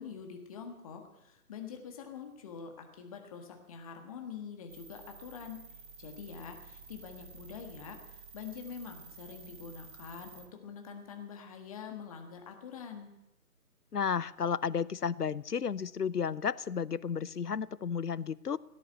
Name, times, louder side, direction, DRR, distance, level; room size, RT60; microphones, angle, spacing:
voice 1, 0.0-5.6 6.0-13.1, left 6 dB, 25° left, 4 dB, 1.7 m, -45 dB
sound 1, 4.7-10.5, right 5 dB, 30° right, 1.4 m, -52 dB
voice 2, 13.9-18.6, left 7 dB, 80° left, 20 dB, 0.7 m, -32 dB
17.0 x 9.8 x 7.8 m, 0.92 s
figure-of-eight pair, 145°, 46 cm